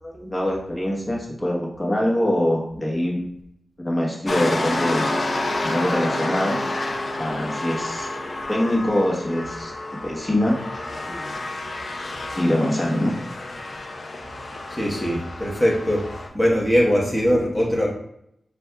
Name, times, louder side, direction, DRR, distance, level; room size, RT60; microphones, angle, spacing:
voice 1, 0.0-3.2 3.8-5.1 5.6-6.6 7.2-8.1 8.5-9.7 10.0-10.6 11.1-11.3 12.3-13.1, left 1 dB, 30° left, -2 dB, 1.1 m, -23 dB
sound 1, 4.3-16.3, left 2 dB, 55° left, 0.6 m, -29 dB
voice 2, 14.7-16.1 16.3-17.9, equal, 5° left, -4 dB, 1.0 m, -21 dB
6.1 x 2.5 x 2.2 m, 0.75 s
cardioid pair, 55°, 0 cm